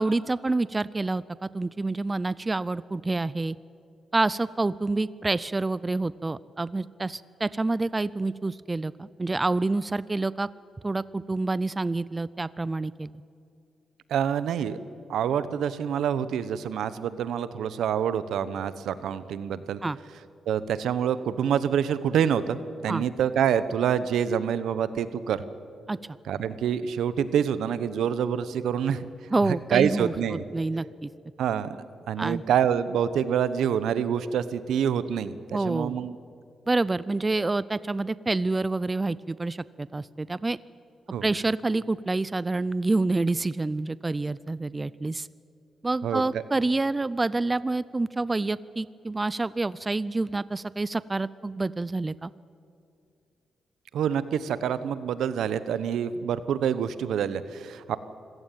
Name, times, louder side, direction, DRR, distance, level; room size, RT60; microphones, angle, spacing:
voice 1, 0.0-3.6 4.1-10.5 10.8-13.1 19.8-20.0 22.9-23.0 25.9-26.2 29.3-31.1 32.2-32.4 35.5-36.0 36.7-40.6 41.2-45.3 45.8-52.3, right 2 dB, 20° right, 19 dB, 0.5 m, -28 dB
voice 2, 14.1-14.8 15.1-19.8 20.5-25.4 26.3-29.1 29.4-30.4 31.4-36.1 41.1-41.3 46.0-46.4 53.9-58.0, right 8 dB, 85° right, 14 dB, 1.0 m, -26 dB
26.0 x 16.0 x 9.2 m, 2.4 s
cardioid pair, 95°, 0 cm